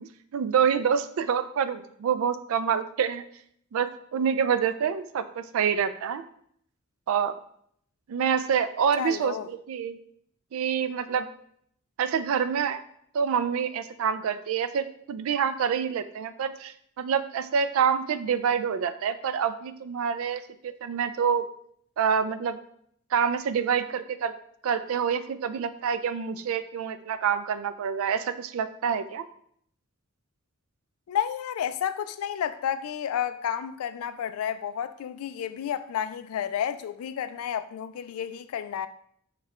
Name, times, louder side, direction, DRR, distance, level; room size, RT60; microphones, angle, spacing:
voice 1, 0.0-3.2 3.7-6.2 7.1-7.3 8.1-10.0 10.5-11.3 12.0-12.8 13.1-21.5 22.0-22.6 23.1-24.3 24.6-29.2, right 7 dB, 70° right, 0.3 m, -27 dB
voice 2, 9.0-9.5 31.1-38.9, left 9 dB, 85° left, 0.3 m, -31 dB
4.8 x 2.3 x 4.2 m
head